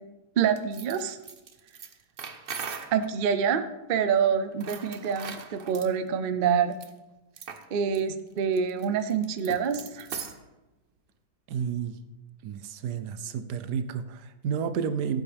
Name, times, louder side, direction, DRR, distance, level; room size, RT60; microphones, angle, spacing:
voice 1, 0.4-1.2 2.9-3.6 3.9-6.7 7.7-10.1, right 7 dB, 90° right, 10 dB, 0.4 m, -26 dB
sound 1, 0.6-3.1 4.5-5.9 6.7-6.9 7.4-7.7 7.9-8.0 8.4-10.4, right 6 dB, 50° right, 0.7 m, -40 dB
voice 2, 11.5-12.0 12.4-15.2, right 7 dB, 75° right, 11 dB, 1.2 m, -31 dB
16.0 x 8.7 x 3.4 m, 1.0 s
omnidirectional pair, 1.9 m